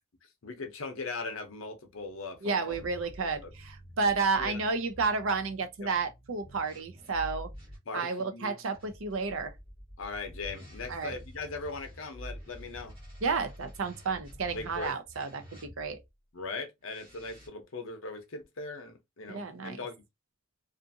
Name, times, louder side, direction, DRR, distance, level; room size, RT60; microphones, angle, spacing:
voice 1, 0.2-2.8 3.2-3.5 4.4-4.6 5.8-5.9 7.9-8.6 10.0-13.0 14.5-14.9 16.3-19.9, left 3 dB, 65° left, 0.7 m, -40 dB
voice 2, 2.4-7.5 7.9-9.5 10.9-11.2 13.2-16.0 19.3-19.8, right 4 dB, 65° right, 0.5 m, -31 dB
sound 1, 2.7-7.8 8.7-16.1 16.8-17.5, equal, 25° right, 1.1 m, -48 dB
2.5 x 2.5 x 2.6 m
head